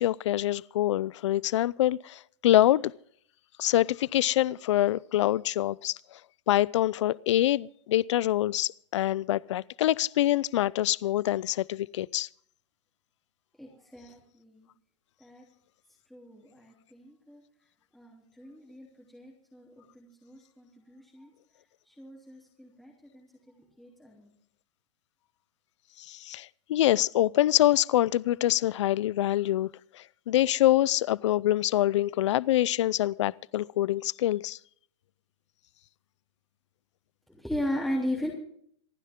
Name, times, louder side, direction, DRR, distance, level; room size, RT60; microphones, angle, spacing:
voice 1, 0.0-2.8 3.6-6.0 6.5-12.3 26.1-29.7 29.9-34.6, left 14 dB, 75° left, 0.5 m, -25 dB
voice 2, 13.6-14.7 15.2-15.4 16.1-17.4 17.9-18.9 19.1-21.3 21.9-23.3 23.8-24.3 37.3-38.3, left 1 dB, ahead, 3.2 m, -37 dB
27.0 x 10.0 x 3.7 m
supercardioid pair, 150°, 15 cm